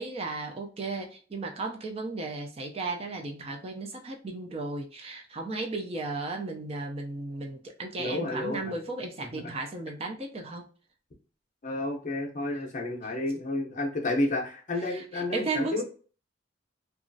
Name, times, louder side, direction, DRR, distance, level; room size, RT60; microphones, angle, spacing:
voice 1, 0.0-10.6 14.9-15.8, right 3 dB, 30° right, 2 dB, 0.4 m, -35 dB
voice 2, 8.0-8.7 11.6-15.8, left 2 dB, 40° left, 1 dB, 0.6 m, -31 dB
2.9 x 2.3 x 2.6 m, 0.40 s
head